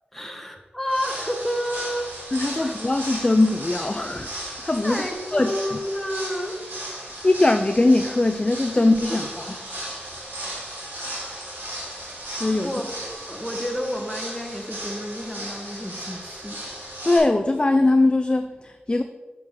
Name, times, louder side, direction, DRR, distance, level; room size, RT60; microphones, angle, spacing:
voice 1, 0.1-2.1 2.6-2.7 4.8-6.6 12.6-16.6, equal, 5° left, 2 dB, 1.2 m, -30 dB
sound 1, 0.9-17.2, right 1 dB, 85° right, 2.7 m, -36 dB
voice 2, 2.3-5.0 5.3-5.5 7.0-9.6 12.4-12.7 17.0-19.0, left 2 dB, 30° left, 6 dB, 0.4 m, -21 dB
8.5 x 6.1 x 3.8 m, 1.2 s
wide cardioid pair, 75°, 3 cm